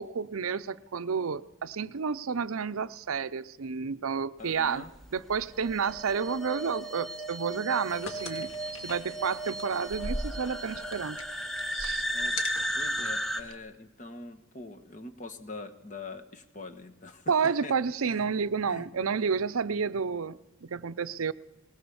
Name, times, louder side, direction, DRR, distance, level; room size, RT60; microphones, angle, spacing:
voice 1, 0.0-4.8 5.1-11.2 11.7-12.0 17.3-21.3, right 6 dB, 85° right, 0.6 m, -30 dB
voice 2, 4.4-4.9 12.1-12.4 12.7-17.3 17.6-17.7 18.0-18.3 18.7-18.8, left 3 dB, 35° left, 1.4 m, -43 dB
sound 1, 4.9-13.4, right 1 dB, ahead, 0.8 m, -35 dB
sound 2, 7.9-13.6, left 2 dB, 70° left, 2.3 m, -41 dB
20.0 x 18.5 x 7.1 m
head